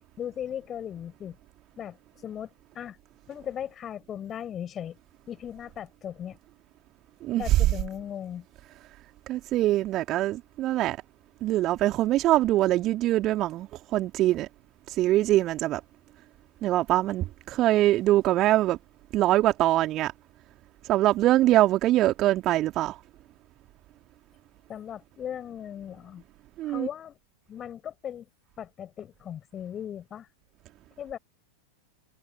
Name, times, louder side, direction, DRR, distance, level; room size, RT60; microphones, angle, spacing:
voice 1, 0.2-1.4 1.8-2.0 2.2-3.0 3.3-5.0 5.3-6.4 7.4-8.5 24.7-26.2 26.6-27.2 27.5-28.3 28.6-30.3 31.0-31.2, left 9 dB, 25° left, 7.1 m, -37 dB
voice 2, 7.2-7.6 9.3-11.0 11.4-14.5 14.9-15.8 16.6-18.8 19.1-20.1 20.8-23.0 26.6-26.9, right 15 dB, 35° right, 2.4 m, -23 dB
figure-of-eight pair, 90°, 0 cm